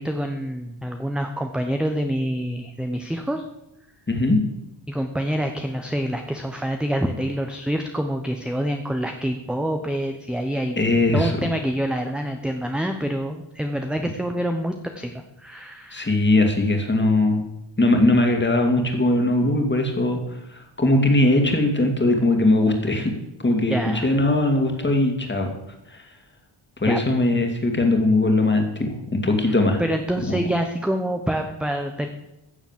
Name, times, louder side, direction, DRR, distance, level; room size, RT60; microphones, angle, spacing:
voice 1, 0.0-3.4 4.9-10.8 11.1-16.1 23.7-24.1 26.9-27.0 29.8-32.1, equal, ahead, 5 dB, 0.8 m, -26 dB
voice 2, 4.1-4.4 10.8-11.3 15.9-17.5 17.8-20.2 20.5-23.1 23.4-25.5 25.9-26.0 26.8-29.8 30.3-30.4, left 2 dB, 20° left, 4 dB, 2.3 m, -20 dB
15.5 x 7.2 x 7.3 m, 0.88 s
wide cardioid pair, 140°, 50 cm